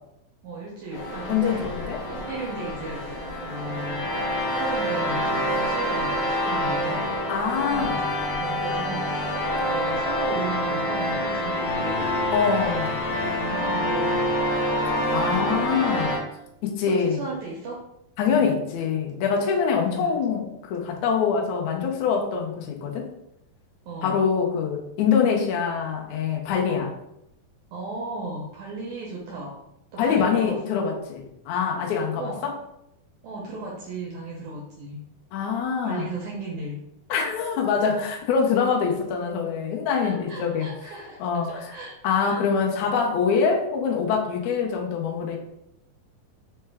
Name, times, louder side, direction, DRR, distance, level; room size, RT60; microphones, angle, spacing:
voice 1, 0.4-1.7 2.1-7.1 7.6-8.0 8.4-12.2 13.1-14.3 14.9-15.7 16.8-17.8 18.3-18.5 20.0-20.2 23.9-24.2 26.7-26.9 27.7-29.6 29.9-30.7 32.2-32.5 33.2-35.1 35.8-36.8 40.0-41.2 41.5-41.9 42.3-42.4, right 2 dB, 85° right, -3 dB, 1.6 m, -35 dB
sound 1, 0.9-16.2, equal, 70° left, 1.5 m, -27 dB
voice 2, 1.3-2.0 7.3-8.1 12.3-13.1 15.1-16.1 16.6-17.2 18.2-23.1 24.0-26.9 30.0-32.5 35.3-36.0 37.1-40.7 41.2-41.7 42.0-45.4, left 6 dB, 85° left, 1 dB, 1.6 m, -24 dB
5.5 x 2.2 x 3.3 m, 0.80 s
omnidirectional pair, 4.1 m